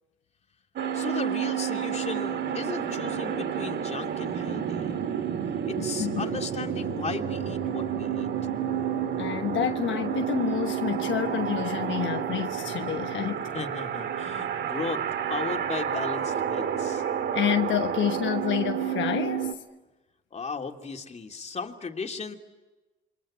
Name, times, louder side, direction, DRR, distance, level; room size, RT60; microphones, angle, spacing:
sound 1, 0.8-19.5, right 8 dB, 60° right, 1.8 m, -30 dB
voice 1, 0.9-5.0 5.7-8.3 13.5-15.0 15.3-17.0 20.3-22.4, left 4 dB, 35° left, 3.0 m, -36 dB
voice 2, 5.8-6.3 9.2-13.5 17.0-19.5, left 11 dB, 75° left, 1.1 m, -29 dB
28.0 x 24.0 x 8.8 m
cardioid pair, 90°, 20 cm